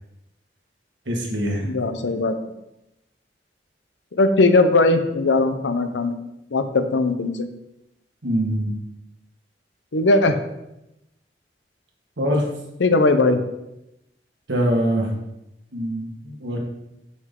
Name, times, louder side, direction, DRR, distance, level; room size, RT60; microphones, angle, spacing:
voice 1, 1.0-1.7 8.2-8.7 12.2-12.5 14.5-15.1 15.7-16.6, equal, 80° right, 0 dB, 1.6 m, -23 dB
voice 2, 1.6-2.3 4.1-6.2 6.5-7.5 9.9-10.4 12.8-13.4, left 2 dB, 90° left, 9 dB, 0.7 m, -19 dB
6.1 x 5.7 x 3.7 m, 0.88 s
head